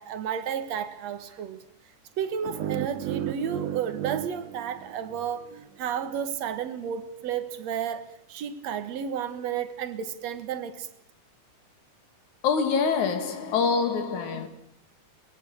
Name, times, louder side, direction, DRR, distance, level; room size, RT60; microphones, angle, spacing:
voice 1, 0.0-1.6 2.2-10.9, right 8 dB, 60° right, 2.5 m, -32 dB
sound 1, 2.4-5.5, right 12 dB, 80° right, 2.6 m, -34 dB
voice 2, 12.4-14.5, left 5 dB, 70° left, 3.3 m, -25 dB
25.0 x 21.0 x 6.5 m
omnidirectional pair, 3.6 m